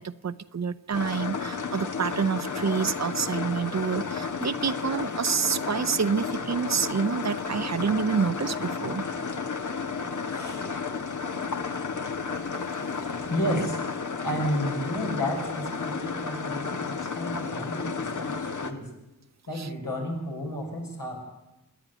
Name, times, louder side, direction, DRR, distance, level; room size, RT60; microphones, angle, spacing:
voice 1, 0.0-9.1 19.5-19.7, right 6 dB, 55° right, 14 dB, 0.8 m, -28 dB
sound 1, 0.9-18.7, left 5 dB, 65° left, 1.5 m, -32 dB
voice 2, 10.2-10.7 13.0-18.9 19.5-21.3, equal, 85° left, 0 dB, 6.1 m, -32 dB
26.5 x 10.5 x 9.6 m, 0.96 s
wide cardioid pair, 105°, 32 cm